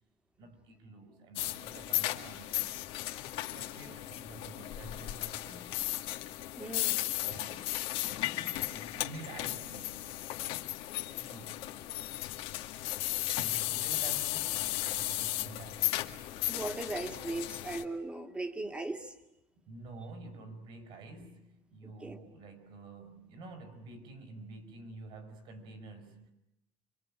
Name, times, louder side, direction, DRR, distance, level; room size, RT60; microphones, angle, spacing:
voice 1, 0.4-2.8 3.5-5.8 6.8-7.8 8.2-10.2 11.2-11.7 12.8-16.2 19.6-26.3, right 3 dB, 60° right, 5.5 m, -49 dB
sound 1, 1.4-17.8, left 16 dB, 70° left, 2.0 m, -35 dB
voice 2, 6.6-7.0 16.4-19.1 21.8-22.2, right 2 dB, 10° right, 2.3 m, -38 dB
27.0 x 25.0 x 8.8 m
cardioid pair, 160°, 10 cm